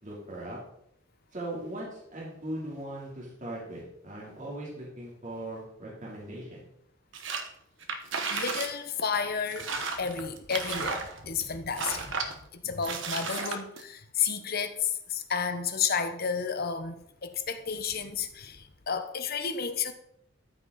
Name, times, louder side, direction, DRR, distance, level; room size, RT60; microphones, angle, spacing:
voice 1, 0.0-0.6 1.3-6.6, right 1 dB, 40° right, 3.2 m, -39 dB
sound 1, 7.1-7.5 7.8-8.7 9.0-9.1 9.5-11.4 11.8-12.3 12.8-13.8, right 4 dB, 65° right, 1.2 m, -33 dB
voice 2, 8.3-12.3 12.5-19.9, left 6 dB, 50° left, 0.9 m, -32 dB
13.5 x 6.0 x 4.1 m
head